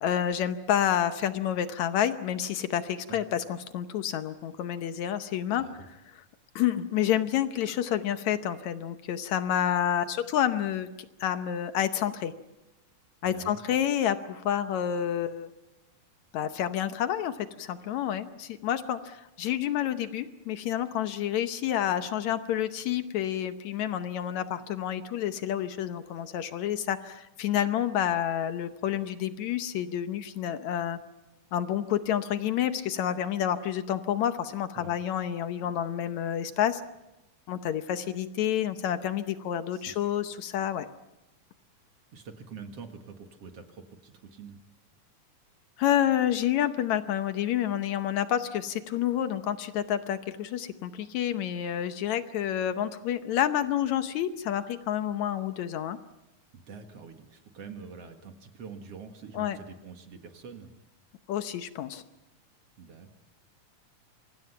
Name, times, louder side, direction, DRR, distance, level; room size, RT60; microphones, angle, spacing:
voice 1, 0.0-5.6 6.6-10.9 11.2-12.3 13.2-15.5 16.3-31.0 31.5-36.8 37.5-40.9 45.8-56.0 59.3-59.6 61.3-62.0, left 10 dB, 70° left, 10 dB, 2.1 m, -29 dB
voice 2, 5.6-5.9 13.2-13.6 34.7-34.9 35.6-35.8 39.7-40.2 42.1-44.6 56.5-60.7 62.8-63.1, right 5 dB, 55° right, 6 dB, 2.6 m, -46 dB
27.5 x 24.0 x 5.8 m, 0.95 s
omnidirectional pair, 3.5 m